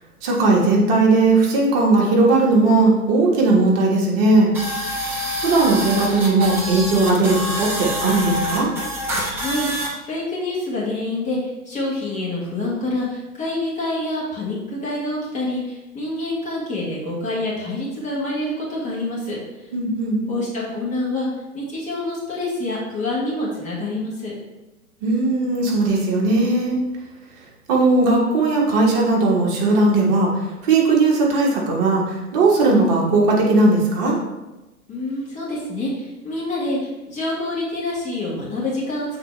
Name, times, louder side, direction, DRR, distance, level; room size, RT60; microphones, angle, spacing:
voice 1, 0.2-4.5 5.4-8.7 19.7-20.2 25.0-26.8 27.7-34.2, right 2 dB, 40° right, -2 dB, 1.6 m, -18 dB
sound 1, 4.5-9.9, equal, 5° right, 0.4 m, -26 dB
voice 2, 9.3-19.7 20.3-21.3 21.5-24.3 34.9-39.2, left 2 dB, 15° left, -5 dB, 1.6 m, -27 dB
7.5 x 4.1 x 3.3 m, 1.0 s
hypercardioid pair, 120°, 45 cm